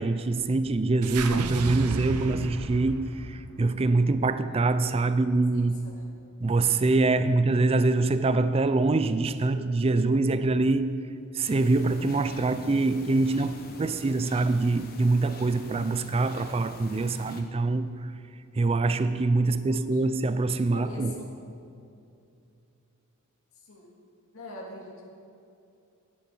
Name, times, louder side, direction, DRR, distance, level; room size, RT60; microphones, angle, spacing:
voice 1, 0.0-5.8 6.4-11.0 11.3-18.1 18.5-21.2, right 3 dB, 25° right, 0.4 m, -24 dB
sound 1, 1.0-5.3, right 3 dB, 85° right, 0.7 m, -34 dB
voice 2, 5.5-6.1 19.7-19.8 20.7-21.5 23.7-23.9 24.3-25.1, left 1 dB, 65° left, 2.2 m, -43 dB
sound 2, 11.4-17.4, left 2 dB, 40° left, 1.1 m, -45 dB
12.0 x 10.0 x 4.5 m
head